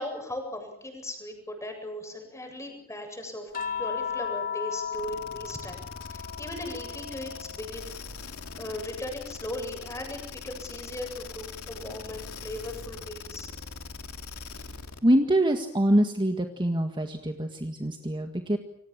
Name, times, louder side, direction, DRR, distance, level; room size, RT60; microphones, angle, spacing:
voice 1, 0.0-7.9 8.6-13.5, left 1 dB, 15° left, 4 dB, 7.8 m, -38 dB
sound 1, 3.5-8.0 8.4-10.0 11.5-11.7, left 7 dB, 40° left, 3.4 m, -37 dB
sound 2, 4.9-15.1, left 4 dB, 75° left, 2.7 m, -42 dB
voice 2, 15.0-18.6, right 1 dB, 20° right, 5 dB, 1.8 m, -24 dB
28.5 x 26.5 x 7.5 m, 0.73 s
head